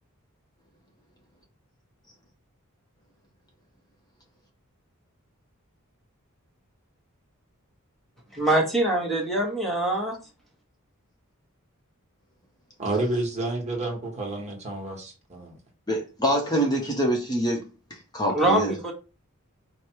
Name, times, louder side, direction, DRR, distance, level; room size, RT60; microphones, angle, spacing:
voice 1, 8.3-10.2 18.3-18.9, right 1 dB, ahead, 1.2 m, -24 dB
voice 2, 12.8-15.6, right 2 dB, 30° right, 1.3 m, -30 dB
voice 3, 15.9-17.6 17.9-18.7, right 1 dB, 20° left, 0.9 m, -25 dB
4.9 x 2.3 x 4.5 m
head